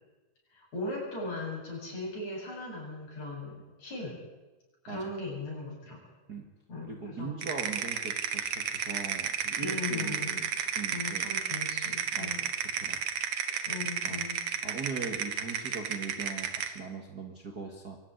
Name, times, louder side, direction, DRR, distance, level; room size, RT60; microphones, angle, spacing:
voice 1, 0.5-4.2 4.8-6.0 6.7-7.3 9.6-10.4 10.9-12.4 13.7-14.4 17.6-17.8, left 2 dB, 55° left, -2 dB, 9.3 m, -38 dB
voice 2, 6.8-11.3 12.2-12.5 12.8-13.0 13.4-13.7 14.0-14.2 14.6-18.0, right 4 dB, 35° right, 2 dB, 2.0 m, -40 dB
sound 1, 7.4-16.8, right 8 dB, 60° right, 2.6 m, -32 dB
24.0 x 14.5 x 9.7 m, 1.1 s
omnidirectional pair, 3.8 m